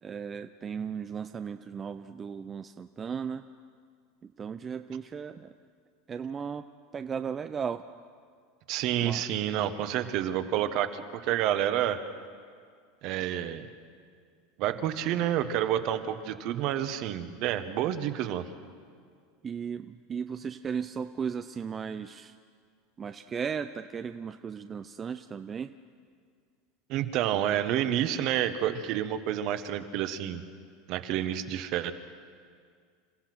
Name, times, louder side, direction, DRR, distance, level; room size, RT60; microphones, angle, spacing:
voice 1, 0.0-3.4 4.2-5.5 6.1-6.7 6.9-7.8 9.0-9.2 19.4-22.4 23.0-25.7, right 6 dB, 25° right, 9 dB, 0.5 m, -36 dB
voice 2, 8.7-12.0 13.0-13.7 14.6-18.4 26.9-30.4 30.9-31.9, right 11 dB, 55° right, 10 dB, 1.2 m, -29 dB
28.0 x 15.0 x 6.1 m, 2.1 s
supercardioid pair, 130°, 0 cm